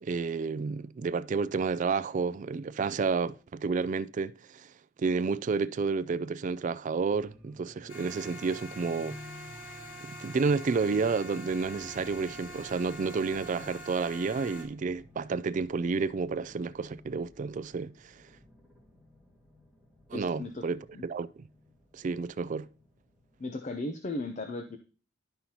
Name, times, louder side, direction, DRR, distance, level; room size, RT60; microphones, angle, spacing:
voice 1, 0.0-4.7 5.0-9.2 10.0-18.1 20.1-21.5 21.9-22.7, right 4 dB, 40° right, 0.3 m, -30 dB
sound 1, 7.1-23.4, left 1 dB, 5° right, 1.3 m, -54 dB
sound 2, 7.9-14.6, equal, 80° left, 1.8 m, -45 dB
voice 2, 20.1-20.6 20.9-21.0 23.4-24.8, left 2 dB, 40° left, 0.6 m, -36 dB
11.5 x 5.5 x 2.9 m
head